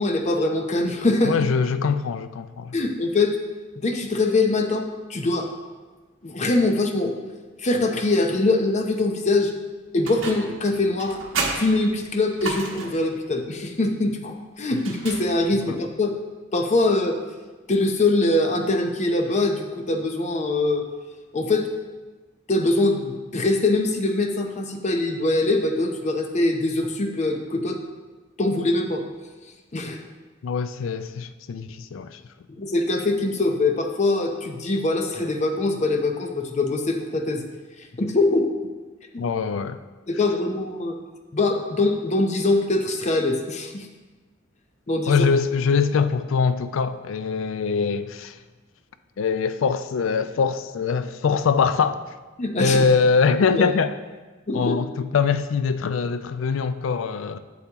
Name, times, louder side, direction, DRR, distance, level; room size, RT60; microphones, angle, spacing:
voice 1, 0.0-1.3 2.7-3.3 3.8-5.5 6.2-7.2 7.6-9.5 9.9-11.2 11.6-16.2 16.5-17.2 17.7-20.8 21.3-21.7 22.5-27.8 28.4-29.0 29.7-30.0 32.6-37.4 38.0-38.5 39.1-39.2 40.1-41.0 41.3-43.9 44.9-45.2 52.4-52.9 53.4-53.6 54.5-54.8, left 2 dB, 35° left, 0.7 m, -23 dB
voice 2, 1.2-2.7 14.7-14.8 15.7-15.8 30.4-32.2 39.2-39.8 45.1-48.4 49.2-52.0 52.6-54.0 54.5-57.4, left 5 dB, 70° left, 0.4 m, -23 dB
sound 1, 10.1-10.6 11.0-13.1 14.8-15.7, right 3 dB, 80° right, 1.1 m, -31 dB
8.0 x 6.9 x 2.9 m
head